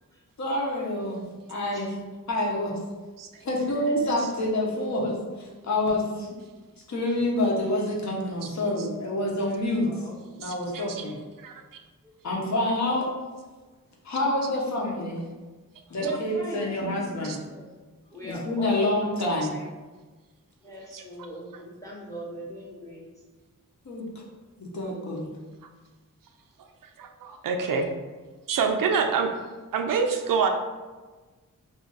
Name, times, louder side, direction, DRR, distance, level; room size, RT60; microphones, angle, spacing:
voice 1, 0.4-2.0 2.3-2.8 3.4-6.3 6.9-10.0 10.4-11.2 12.2-13.1 14.0-15.2 15.9-17.4 18.2-19.5 23.8-24.1 24.6-25.3, left 1 dB, 55° left, -2 dB, 0.8 m, -27 dB
voice 2, 6.0-6.6 9.7-10.4 11.0-11.2 12.0-12.4 15.9-17.2 17.5-17.7 18.1-19.7 20.6-23.1 27.6-27.9 28.8-29.1, equal, 10° left, -4 dB, 0.8 m, -40 dB
voice 3, 10.4-11.0 11.4-11.6 17.2-17.4 20.9-21.0 27.0-27.9 28.5-29.3 29.7-30.5, right 5 dB, 80° right, 5 dB, 0.5 m, -26 dB
2.5 x 2.5 x 3.9 m, 1.3 s
wide cardioid pair, 85°, 33 cm